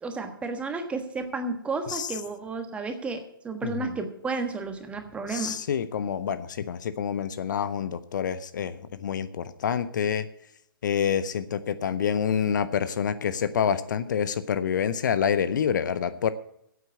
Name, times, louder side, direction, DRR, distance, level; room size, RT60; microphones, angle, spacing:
voice 1, 0.0-5.6, right 4 dB, 10° right, 6 dB, 1.3 m, -32 dB
voice 2, 3.6-4.0 5.3-10.3 10.8-16.3, left 7 dB, 55° left, 14 dB, 0.7 m, -27 dB
9.2 x 8.3 x 8.2 m, 0.74 s
figure-of-eight pair, 130°, 12 cm